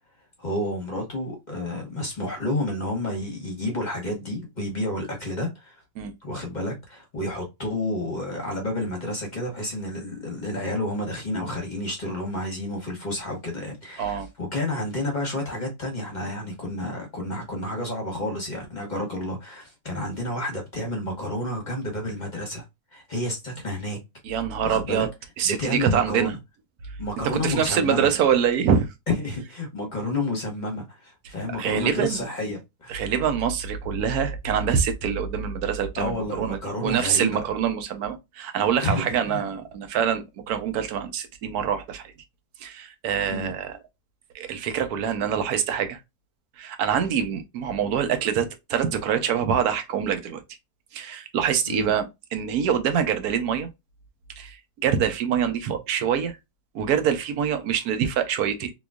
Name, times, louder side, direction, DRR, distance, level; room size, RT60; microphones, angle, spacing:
voice 1, 0.4-5.8 6.2-22.6 22.9-24.0 24.6-25.1 25.4-26.4 27.0-28.1 29.2-33.0 36.0-37.4 38.8-39.4 43.3-43.5 51.7-51.9, left 1 dB, 35° left, 1.0 m, -30 dB
voice 2, 24.2-25.1 25.4-26.3 27.2-28.9 31.6-32.2 32.9-42.1 42.6-43.8 44.3-46.0 46.6-50.4 50.9-53.7 54.4-54.6 54.8-56.3 56.7-58.7, right 8 dB, 80° right, 1.2 m, -25 dB
3.8 x 2.9 x 2.3 m
omnidirectional pair, 1.6 m